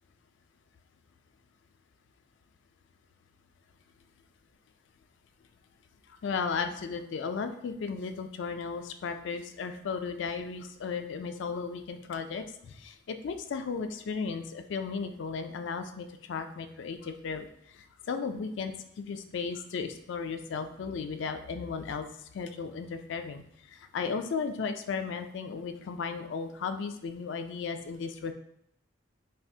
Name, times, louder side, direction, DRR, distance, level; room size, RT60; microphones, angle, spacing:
voice 1, 6.1-28.3, left 5 dB, 70° left, 8 dB, 0.3 m, -35 dB
5.4 x 2.1 x 2.7 m, 0.76 s
head